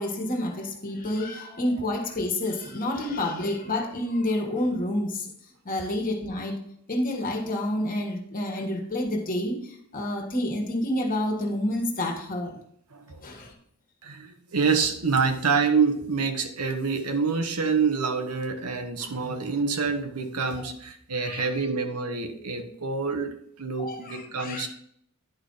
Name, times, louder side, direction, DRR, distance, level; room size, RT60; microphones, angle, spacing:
voice 1, 0.0-5.3 5.6-6.6 6.9-12.5 13.2-13.5 20.6-20.7 21.1-21.6 23.8-24.7, left 1 dB, 40° left, 2 dB, 1.5 m, -29 dB
voice 2, 12.9-13.2 14.0-24.7, right 5 dB, 85° right, 6 dB, 1.1 m, -27 dB
10.5 x 5.0 x 4.0 m, 0.69 s
head